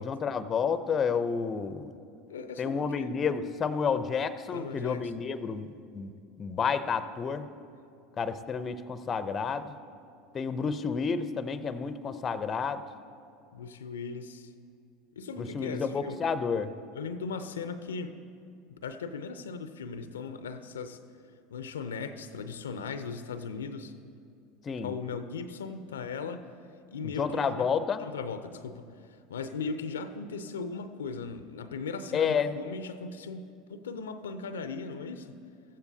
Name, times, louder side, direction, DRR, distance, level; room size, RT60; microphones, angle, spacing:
voice 1, 0.0-1.9 2.6-5.7 5.9-6.1 6.4-7.5 8.2-9.7 10.3-12.8 15.4-16.7 24.7-24.9 27.2-28.1 32.1-32.6, left 6 dB, 30° left, 12 dB, 0.6 m, -30 dB
voice 2, 2.3-3.1 4.5-5.1 13.5-14.5 15.2-16.3 16.9-18.2 18.7-21.0 21.5-23.9 24.8-26.5 26.9-27.7 28.0-28.9 29.3-35.4, left 5 dB, 85° left, 11 dB, 0.5 m, -38 dB
15.0 x 14.5 x 2.7 m, 2.5 s
hypercardioid pair, 80°, 0 cm